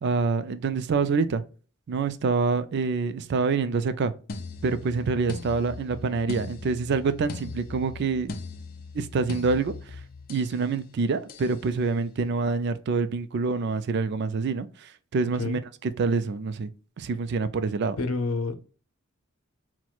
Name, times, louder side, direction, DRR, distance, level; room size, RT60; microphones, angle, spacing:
voice 1, 0.0-1.4 1.9-4.1 4.6-8.4 8.9-10.0 10.3-16.7 17.0-18.0, right 4 dB, 50° right, 0.3 m, -26 dB
sound 1, 4.3-10.6 11.3-11.6, left 4 dB, 45° left, 0.4 m, -39 dB
voice 2, 15.2-15.6 18.0-18.6, left 3 dB, 85° left, 0.6 m, -29 dB
4.4 x 2.1 x 2.3 m
head